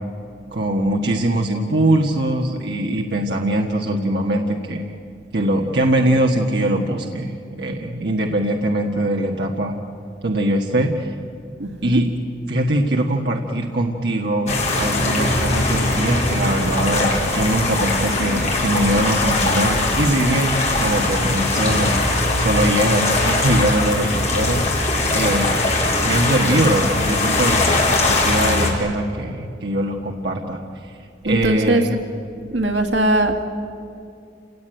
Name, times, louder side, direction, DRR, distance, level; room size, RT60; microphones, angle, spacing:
voice 1, 0.5-4.9 5.3-9.7 10.2-11.2 11.8-12.1 12.5-22.0 22.4-24.6 25.1-25.6 26.0-31.0 31.2-32.0, right 1 dB, 70° right, 0 dB, 1.6 m, -22 dB
voice 2, 11.6-12.0 31.2-31.8 32.5-33.5, right 1 dB, 90° right, 4 dB, 2.3 m, -19 dB
sound 1, 14.5-28.7, left 2 dB, 40° left, 4.5 m, -20 dB
29.0 x 18.0 x 9.2 m, 2.5 s
head